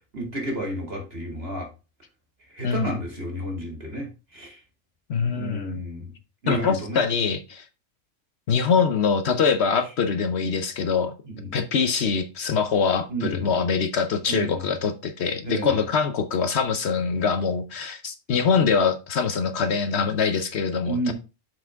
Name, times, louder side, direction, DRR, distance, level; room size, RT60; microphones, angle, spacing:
voice 1, 0.1-1.7 2.5-4.6 5.3-6.1 6.4-7.0 11.2-11.6 13.1-13.5 14.3-14.7 15.4-15.8 20.9-21.1, right 1 dB, 50° right, 2.7 m, -31 dB
voice 2, 2.6-2.9 5.1-5.8 6.5-7.7 8.5-11.1 11.5-21.1, left 5 dB, 60° left, 1.0 m, -24 dB
7.0 x 6.0 x 3.5 m
omnidirectional pair, 1.3 m